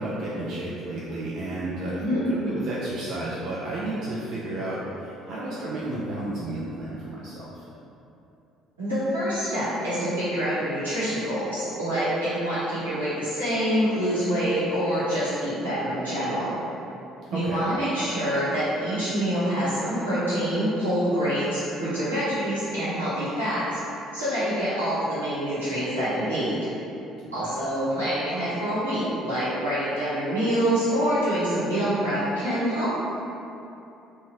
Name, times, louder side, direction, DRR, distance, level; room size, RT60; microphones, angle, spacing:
voice 1, 0.0-7.6 17.3-17.6 27.3-27.5, right 1 dB, 55° right, -7 dB, 0.4 m, -32 dB
voice 2, 8.8-16.6 17.3-23.8 24.1-26.6 27.3-32.9, equal, 90° right, -13 dB, 0.9 m, -26 dB
2.6 x 2.3 x 2.8 m, 2.8 s
figure-of-eight pair, 50°, 0 cm